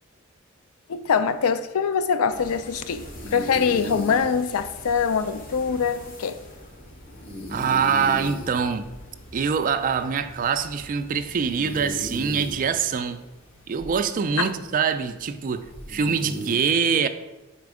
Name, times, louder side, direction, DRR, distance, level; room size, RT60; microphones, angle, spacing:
voice 1, 0.9-6.4 14.4-14.5, left 6 dB, 85° left, 0.4 m, -24 dB
sound 1, 2.3-12.7, left 1 dB, 40° left, 0.9 m, -45 dB
sound 2, 3.1-16.6, equal, 65° left, 1.3 m, -39 dB
voice 2, 7.5-8.9 9.3-13.2 13.7-17.1, right 6 dB, 40° right, 0.3 m, -24 dB
5.0 x 4.3 x 4.8 m
head